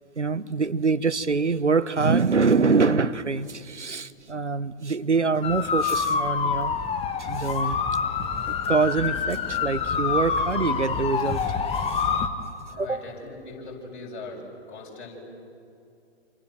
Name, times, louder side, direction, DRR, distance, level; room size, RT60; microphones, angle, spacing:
voice 1, 0.2-6.8 7.2-7.8 8.5-12.1 12.8-13.0, right 4 dB, 90° right, 15 dB, 0.9 m, -25 dB
sound 1, 5.4-12.3, left 6 dB, 15° left, 1.3 m, -26 dB
voice 2, 12.7-15.2, left 3 dB, 50° left, -1 dB, 7.3 m, -40 dB
28.5 x 28.0 x 7.6 m, 2.6 s
figure-of-eight pair, 115°, 34 cm